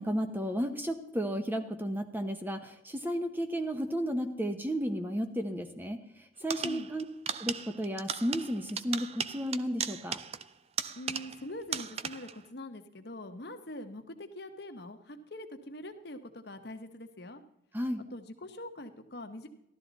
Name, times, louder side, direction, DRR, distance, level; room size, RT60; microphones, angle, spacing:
voice 1, 0.0-7.0 7.4-10.2 17.7-18.0, equal, 10° right, 7 dB, 0.8 m, -33 dB
sound 1, 6.5-11.5 11.7-12.4, right 7 dB, 35° right, 0.4 m, -37 dB
voice 2, 11.0-17.4 18.1-19.5, left 1 dB, 55° left, 7 dB, 1.1 m, -43 dB
14.0 x 12.5 x 4.0 m, 0.81 s
head